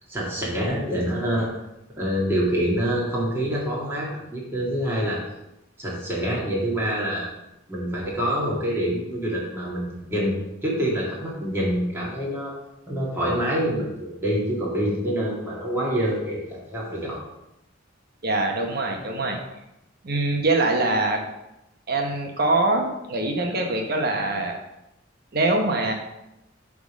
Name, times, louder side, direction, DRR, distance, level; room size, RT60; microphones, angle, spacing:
voice 1, 0.1-1.5 2.0-5.2 5.8-7.3 7.7-12.5 12.9-17.2, equal, 15° right, -5 dB, 2.2 m, -26 dB
voice 2, 18.2-19.4 20.0-21.2 21.9-24.6 25.3-25.9, right 2 dB, 55° right, 2 dB, 1.1 m, -23 dB
7.8 x 3.7 x 6.3 m, 0.89 s
head